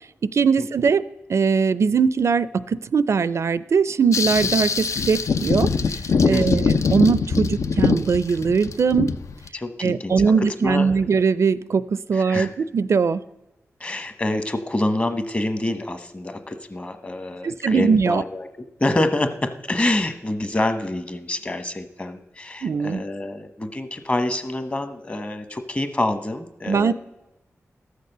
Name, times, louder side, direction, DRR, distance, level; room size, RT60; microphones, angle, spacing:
voice 1, 0.2-1.0 1.3-5.7 6.2-9.1 9.8-13.2 17.4-18.2 22.6-23.0 26.7-26.9, right 5 dB, 65° right, 17 dB, 0.4 m, -20 dB
sound 1, 4.1-9.5, left 5 dB, 75° left, 0.6 m, -22 dB
voice 2, 6.3-6.7 9.5-10.9 12.1-12.5 13.8-18.5 18.8-26.9, left 1 dB, 25° left, 9 dB, 1.1 m, -26 dB
13.5 x 6.6 x 6.6 m, 0.96 s
wide cardioid pair, 95°, 5 cm